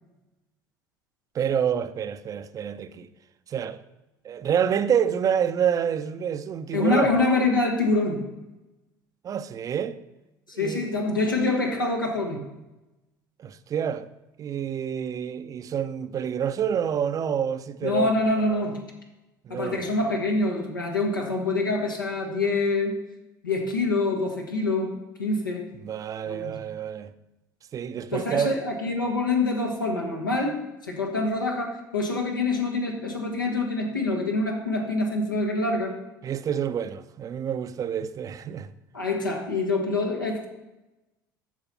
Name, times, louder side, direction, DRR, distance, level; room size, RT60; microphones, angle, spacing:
voice 1, 1.3-3.1 3.5-3.8 4.2-7.2 9.2-10.0 10.5-10.9 13.4-14.1 14.4-18.1 19.4-19.8 25.8-27.1 27.7-28.6 36.2-38.7, right 8 dB, 30° right, 0.6 m, -28 dB
voice 2, 6.7-8.2 10.6-12.4 17.8-18.8 19.5-23.0 23.4-25.7 26.2-26.5 28.1-35.9 38.9-40.5, left 2 dB, 80° left, 1.6 m, -25 dB
13.5 x 4.8 x 5.6 m
figure-of-eight pair, 65°, 11 cm